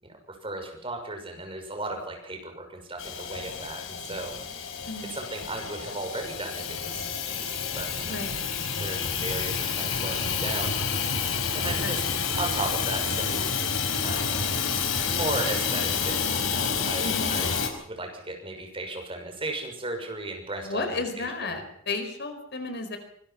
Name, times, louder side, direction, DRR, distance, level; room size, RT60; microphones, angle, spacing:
voice 1, 0.0-4.3 5.1-8.2 8.8-10.7 11.5-12.0 12.3-13.5 14.0-14.5 15.1-17.5 17.8-21.6, right 2 dB, 25° right, 3 dB, 6.3 m, -36 dB
Hiss / Toilet flush / Trickle dribble, 3.0-17.7, left 6 dB, 85° left, 4.4 m, -29 dB
voice 2, 4.8-5.2 8.0-8.4 11.6-11.9 17.0-17.3 20.6-23.0, left 3 dB, 55° left, 7 dB, 4.7 m, -33 dB
25.0 x 22.0 x 5.9 m, 0.65 s
head